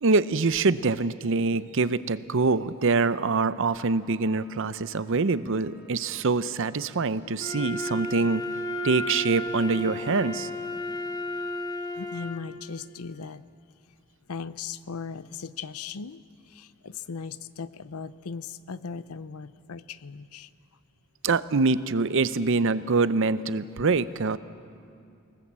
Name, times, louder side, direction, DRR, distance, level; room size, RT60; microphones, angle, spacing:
voice 1, 0.0-8.4 8.8-10.5 21.2-24.4, right 4 dB, 60° right, 14 dB, 0.6 m, -25 dB
Bowed string instrument, 3.4-7.4, left 1 dB, 5° right, 3.7 m, -56 dB
Wind instrument woodwind instrument, 7.4-12.5, left 1 dB, 15° left, 1.1 m, -33 dB
voice 2, 11.9-13.4 14.3-20.5, left 5 dB, 80° left, 15 dB, 0.6 m, -38 dB
27.5 x 18.5 x 7.5 m, 2.5 s
head